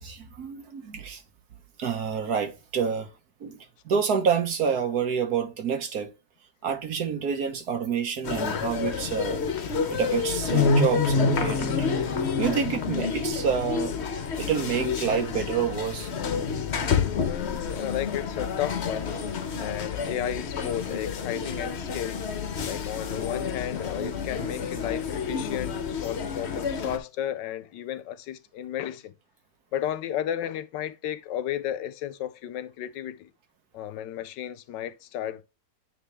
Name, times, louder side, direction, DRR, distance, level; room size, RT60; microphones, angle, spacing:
voice 1, 0.0-1.2 1.8-3.1 3.4-3.6 3.8-6.1 6.6-9.4 9.9-11.9 12.4-13.9 14.4-16.1, right 7 dB, 60° right, 1.7 m, -28 dB
sound 1, 8.2-27.0, left 5 dB, 50° left, 0.9 m, -28 dB
voice 2, 17.2-19.2 19.6-22.3 22.6-29.1 29.7-33.3 33.7-35.4, left 11 dB, 80° left, 1.3 m, -33 dB
9.3 x 3.4 x 3.4 m
omnidirectional pair, 1.9 m